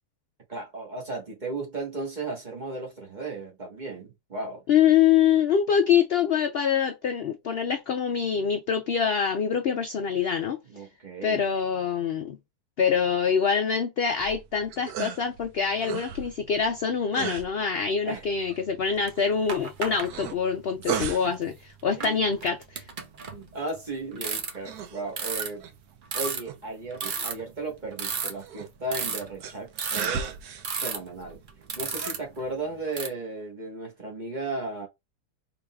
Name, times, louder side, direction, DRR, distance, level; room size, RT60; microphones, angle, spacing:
voice 1, 0.5-4.6 10.7-11.4 18.0-18.3 20.9-21.1 22.0-22.3 23.3-25.7 26.1-30.4 30.8-31.4 31.8-34.9, right 2 dB, 30° right, 1.4 m, -35 dB
voice 2, 4.7-10.6 11.2-12.4 12.8-21.5 21.8-22.8, left 7 dB, 70° left, 0.5 m, -25 dB
sound 1, 14.1-32.8, right 7 dB, 75° right, 1.2 m, -39 dB
sound 2, 19.1-19.2 19.5-20.1 20.9-21.1 21.9-23.8 24.1-24.7 25.2-25.5 26.1-26.4 26.9-27.4 27.9-28.6 28.9-29.3 29.8-30.2 30.6-31.0 31.5-32.4 32.9-33.1, right 5 dB, 55° right, 0.5 m, -32 dB
4.8 x 3.9 x 2.3 m
omnidirectional pair, 1.7 m